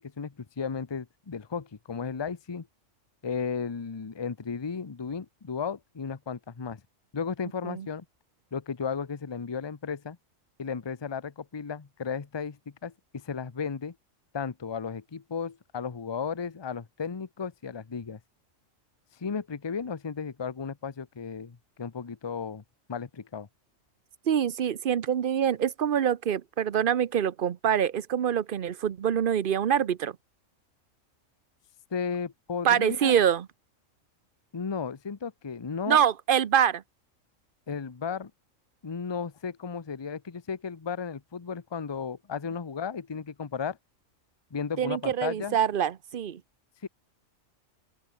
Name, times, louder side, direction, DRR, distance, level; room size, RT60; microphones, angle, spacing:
voice 1, 0.0-2.7 3.2-6.8 7.1-8.0 8.5-10.2 10.6-13.9 14.3-18.2 19.1-22.6 22.9-23.5 31.9-33.2 34.5-36.0 37.7-38.3 38.8-43.8 44.5-45.6 46.8-46.9, left 6 dB, 25° left, 0.7 m, -34 dB
voice 2, 24.3-30.2 32.6-33.5 35.9-36.8 44.8-46.4, right 9 dB, 50° right, 0.8 m, -25 dB
open air
omnidirectional pair, 1.4 m